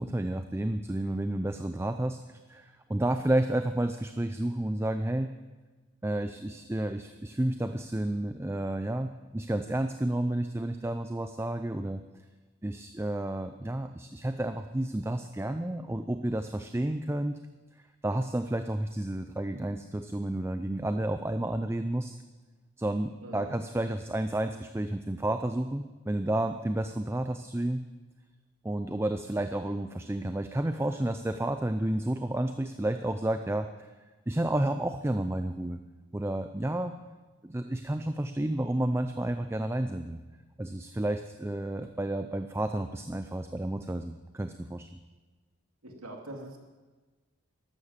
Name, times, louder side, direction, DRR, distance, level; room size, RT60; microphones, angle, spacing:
voice 1, 0.0-5.3 6.0-12.0 12.6-17.4 17.8-22.2 22.8-27.8 28.6-33.9 34.3-35.8 36.1-36.9 37.4-40.2 40.6-44.9, right 1 dB, 10° right, 8 dB, 0.4 m, -31 dB
voice 2, 23.2-23.5 45.8-46.6, right 1 dB, 90° right, 1 dB, 2.6 m, -42 dB
13.0 x 11.5 x 7.3 m, 1.3 s
head